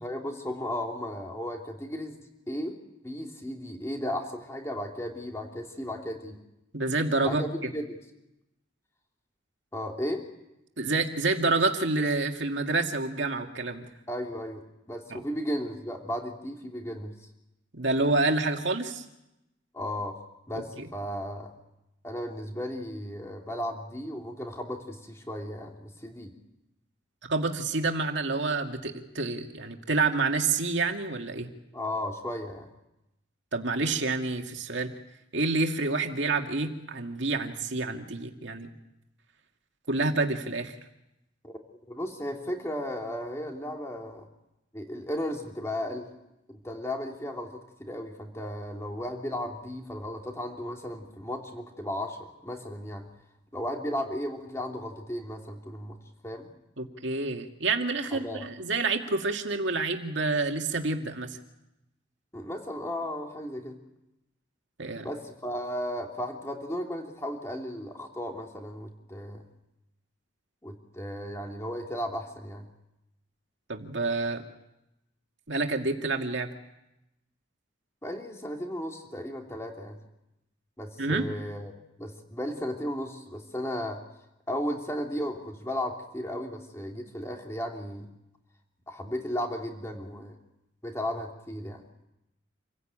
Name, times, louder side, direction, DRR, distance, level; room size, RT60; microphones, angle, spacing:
voice 1, 0.0-2.2 2.5-2.8 3.0-6.4 7.2-7.9 9.7-10.2 14.1-14.6 14.9-17.1 19.7-20.2 20.5-21.5 22.0-26.3 31.7-32.7 41.4-41.6 41.9-44.3 44.7-46.1 46.5-53.1 53.5-56.0 56.2-56.5 58.1-58.4 62.3-63.8 65.0-69.4 70.6-72.6 78.0-80.0 80.8-81.7 82.0-84.0 84.5-88.1 88.9-90.3 90.8-91.8, left 1 dB, 15° left, 2 dB, 2.9 m, -35 dB
voice 2, 6.7-7.7 10.8-13.9 15.1-15.2 17.7-19.0 20.5-20.9 27.3-31.5 33.5-34.9 35.3-38.7 39.9-40.8 56.8-61.4 64.8-65.1 73.7-74.4 75.5-76.5 81.0-81.3, right 3 dB, 70° right, 4 dB, 2.3 m, -28 dB
27.5 x 16.0 x 8.9 m, 0.91 s
head